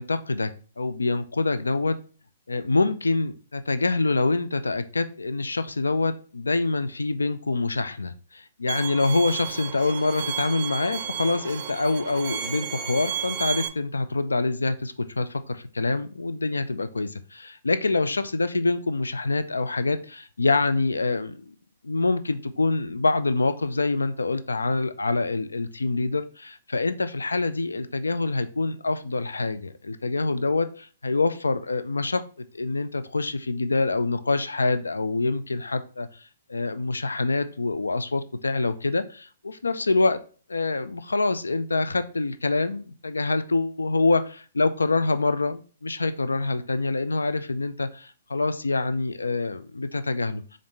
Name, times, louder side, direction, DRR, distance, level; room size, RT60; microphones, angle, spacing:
voice 1, 0.0-2.0 2.5-21.5 21.8-32.2 32.5-36.2 36.5-40.2 40.5-50.4, left 3 dB, 85° left, 11 dB, 0.3 m, -26 dB
Bowed string instrument, 8.7-13.7, right 9 dB, 40° right, 0.4 m, -33 dB
3.5 x 2.5 x 4.0 m, 0.39 s
figure-of-eight pair, 125°, 0 cm